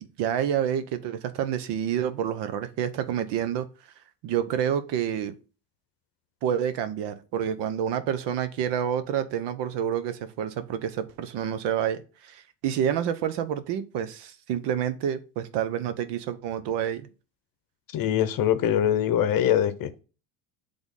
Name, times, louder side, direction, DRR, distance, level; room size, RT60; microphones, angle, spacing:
voice 1, 0.0-3.7 4.2-5.3 6.4-17.1, right 9 dB, 70° right, 0.9 m, -28 dB
voice 2, 17.9-19.9, left 10 dB, 50° left, 0.8 m, -23 dB
6.1 x 3.5 x 5.4 m
supercardioid pair, 95°, 44 cm